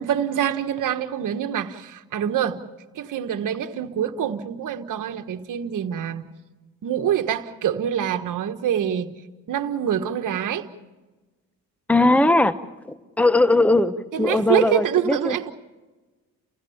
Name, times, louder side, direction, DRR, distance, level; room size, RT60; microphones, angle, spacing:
voice 1, 0.0-2.6 2.9-6.3 6.8-9.1 9.5-10.7 14.1-15.5, right 9 dB, 60° right, 1.4 m, -25 dB
voice 2, 11.9-12.6 12.9-15.4, left 2 dB, 5° left, 1.0 m, -19 dB
29.0 x 16.5 x 7.2 m
cardioid pair, 80°, 35 cm